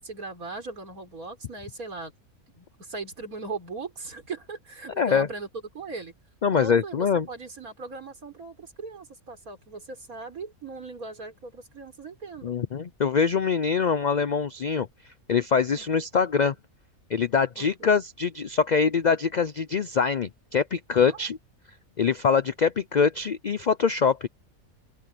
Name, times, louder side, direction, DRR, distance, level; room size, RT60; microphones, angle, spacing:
voice 1, 0.0-2.1 2.5-5.5 5.7-6.1 6.5-12.6 15.7-15.8 17.6-17.9 21.1-21.2, right 3 dB, 75° right, 4.7 m, -39 dB
voice 2, 5.0-5.3 6.4-7.3 12.4-14.9 15.3-16.5 17.1-21.4 22.0-24.3, left 6 dB, 90° left, 0.3 m, -24 dB
open air
omnidirectional pair, 1.5 m